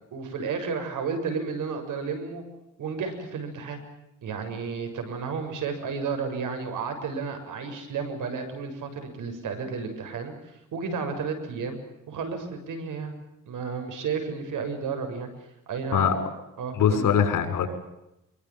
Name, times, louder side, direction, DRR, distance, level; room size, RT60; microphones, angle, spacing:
voice 1, 0.1-2.4 2.8-3.8 4.2-10.3 10.7-11.8 12.1-13.1 13.5-15.3 15.7-16.2 16.6-17.1, right 5 dB, 80° right, 6 dB, 7.1 m, -32 dB
voice 2, 16.7-17.7, left 8 dB, 90° left, 7 dB, 6.1 m, -22 dB
25.5 x 24.0 x 7.4 m, 0.88 s
cardioid pair, 125°, 31 cm